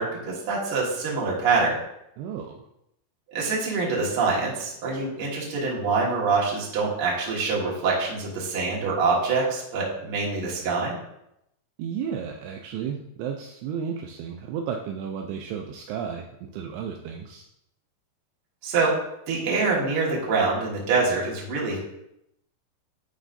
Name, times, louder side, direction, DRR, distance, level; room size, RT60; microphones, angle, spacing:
voice 1, 0.0-1.8 3.3-10.9 18.6-18.9 19.3-21.8, right 4 dB, 50° right, -4 dB, 1.7 m, -25 dB
voice 2, 2.2-2.6 11.8-17.4, right 7 dB, 80° right, 2 dB, 2.4 m, -33 dB
11.5 x 4.1 x 2.6 m, 0.81 s
omnidirectional pair, 4.9 m